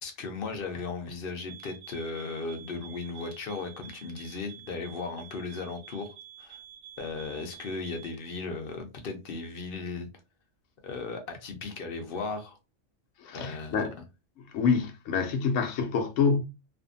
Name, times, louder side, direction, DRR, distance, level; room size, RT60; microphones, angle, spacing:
voice 1, 0.0-6.6 7.0-10.1 10.8-12.6 13.3-13.8, left 4 dB, 55° left, 0.7 m, -36 dB
sound 1, 1.5-8.2, right 9 dB, 85° right, 1.0 m, -49 dB
voice 2, 13.2-13.9 14.5-16.4, left 5 dB, 85° left, 1.0 m, -26 dB
2.6 x 2.5 x 2.5 m
omnidirectional pair, 1.3 m